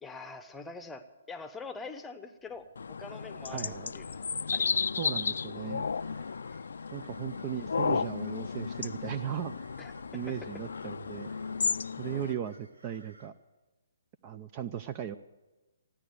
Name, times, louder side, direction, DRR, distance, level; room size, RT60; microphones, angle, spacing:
voice 1, 0.0-4.7 6.5-6.6 9.8-10.3 12.1-12.3, left 4 dB, 10° left, 8 dB, 0.9 m, -45 dB
Wind, 2.4-12.2, right 2 dB, 65° right, 5.3 m, -62 dB
sound 1, 2.8-12.3, left 5 dB, 80° left, 0.4 m, -34 dB
voice 2, 3.5-3.9 5.0-5.8 6.9-9.5 10.1-11.3 12.0-13.3 14.2-15.2, right 10 dB, 30° right, 12 dB, 0.5 m, -37 dB
sound 2, 5.9-13.3, right 1 dB, 80° right, 2.1 m, -59 dB
15.0 x 10.0 x 9.3 m, 1.1 s
hypercardioid pair, 150°, 0 cm